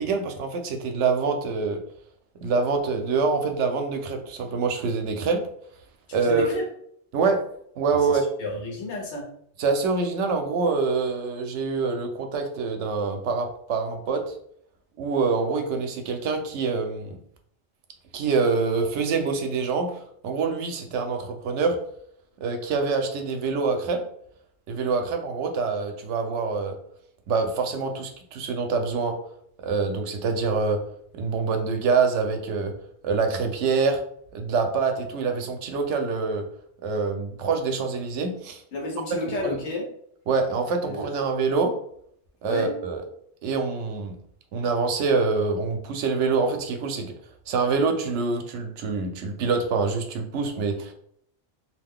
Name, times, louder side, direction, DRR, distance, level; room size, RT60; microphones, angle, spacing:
voice 1, 0.0-1.8 2.4-5.4 6.1-6.5 7.1-7.4 7.8-8.2 9.6-14.3 15.0-17.2 18.1-19.9 20.2-21.8 22.4-24.0 24.7-26.7 27.3-29.2 29.6-30.8 31.1-32.7 33.0-34.0 34.3-36.4 36.8-38.6 39.4-39.6 40.3-41.7 42.4-43.0 43.4-44.2 44.5-47.1 47.5-50.9, right 4 dB, 85° right, 5 dB, 0.9 m, -25 dB
voice 2, 6.1-6.6 7.9-9.3 38.7-39.9 40.8-41.1 42.4-42.7, left 2 dB, 80° left, -1 dB, 1.2 m, -31 dB
2.7 x 2.1 x 3.5 m, 0.67 s
omnidirectional pair, 1.2 m